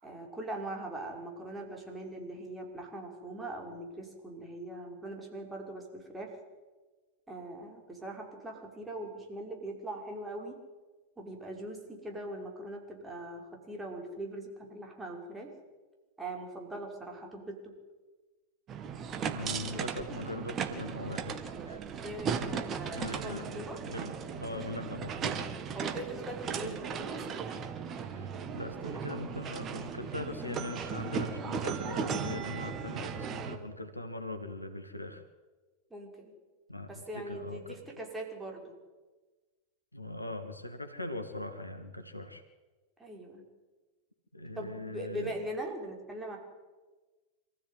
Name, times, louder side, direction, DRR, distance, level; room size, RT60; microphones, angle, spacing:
voice 1, 0.0-6.3 7.3-10.6 11.2-15.5 16.2-17.7 22.0-23.8 25.7-27.6 33.3-33.8 35.9-36.3 36.9-38.8 43.0-43.4 44.6-46.4, right 1 dB, 10° right, 0 dB, 5.9 m, -41 dB
sound 1, 18.7-33.6, right 6 dB, 30° right, 2.1 m, -37 dB
voice 2, 19.3-21.8 22.9-25.5 26.6-26.8 28.0-35.2 36.7-37.8 39.9-42.4 44.3-45.3, left 2 dB, 85° left, 8 dB, 2.2 m, -41 dB
26.5 x 15.0 x 9.4 m, 1.3 s
figure-of-eight pair, 90°, 0 cm